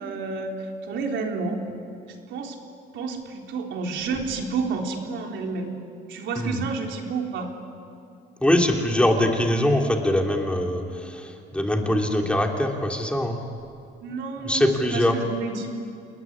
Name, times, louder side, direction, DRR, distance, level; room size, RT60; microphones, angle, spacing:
voice 1, 0.0-1.6 2.3-2.6 2.9-5.7 6.1-7.5 14.0-15.7, right 4 dB, 70° right, 2 dB, 3.9 m, -30 dB
voice 2, 6.3-6.7 8.4-13.4 14.4-15.2, left 1 dB, 5° left, 1 dB, 3.2 m, -23 dB
29.0 x 20.5 x 9.8 m, 2.5 s
cardioid pair, 130°, 20 cm